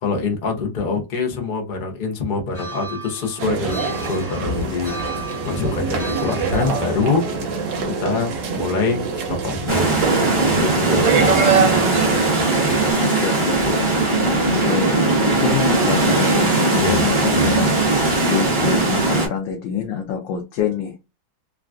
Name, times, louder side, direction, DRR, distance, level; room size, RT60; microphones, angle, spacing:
voice 1, 0.0-4.9 5.4-7.3 7.8-11.5 16.8-17.0 17.3-17.6, left 4 dB, 65° left, 0.4 m, -25 dB
sound 1, 2.5-7.8, right 2 dB, 40° left, 1.2 m, -36 dB
sound 2, 3.4-12.9, right 5 dB, 90° right, 1.5 m, -24 dB
sound 3, 9.7-19.3, right 2 dB, 30° right, 0.5 m, -19 dB
voice 2, 13.0-13.6 14.2-20.9, left 8 dB, 90° left, 1.3 m, -26 dB
3.7 x 2.3 x 2.4 m
omnidirectional pair, 1.9 m